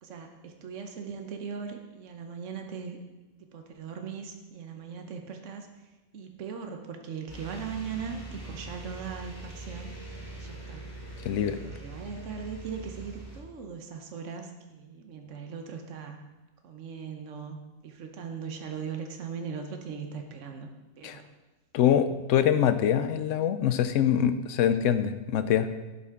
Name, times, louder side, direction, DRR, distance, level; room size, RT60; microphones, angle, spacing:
voice 1, 0.0-3.0 3.5-5.7 6.1-9.9 10.4-10.9 11.5-16.2 16.6-20.7 21.0-21.3, right 6 dB, 75° right, 5 dB, 1.3 m, -39 dB
sound 1, 7.3-13.4, right 2 dB, 20° left, 3.3 m, -42 dB
voice 2, 11.2-11.6 21.0-21.2 21.7-25.7, left 9 dB, 85° left, 11 dB, 1.0 m, -24 dB
11.0 x 8.5 x 3.7 m, 1.1 s
omnidirectional pair, 1.3 m